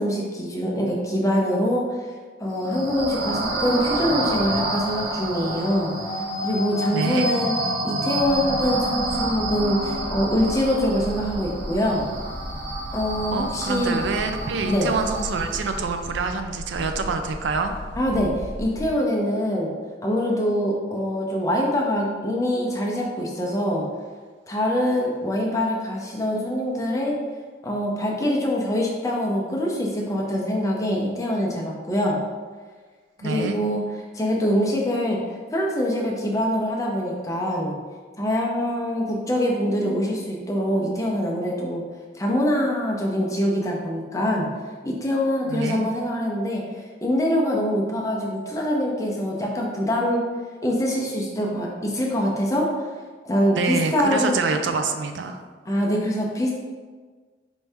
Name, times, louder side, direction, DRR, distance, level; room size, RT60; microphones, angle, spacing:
voice 1, 0.0-1.8 2.4-5.9 6.4-7.5 7.8-12.1 12.9-14.0 14.7-14.9 18.0-19.7 20.0-23.8 24.5-27.2 27.6-32.2 33.2-33.8 34.1-35.2 35.5-37.7 38.2-41.8 42.1-44.5 44.8-46.6 47.0-50.2 50.6-52.7 53.2-54.4 55.7-56.5, equal, 20° left, -2 dB, 0.6 m, -24 dB
sound 1, 2.5-15.9, right 1 dB, 65° right, 0.7 m, -29 dB
voice 2, 6.9-7.3 13.3-17.7 33.2-33.6 45.5-45.9 53.5-55.4, right 4 dB, 85° right, 6 dB, 0.4 m, -26 dB
sound 2, 8.2-18.9, equal, 90° left, 0.8 m, -36 dB
4.5 x 2.7 x 3.3 m, 1.5 s
head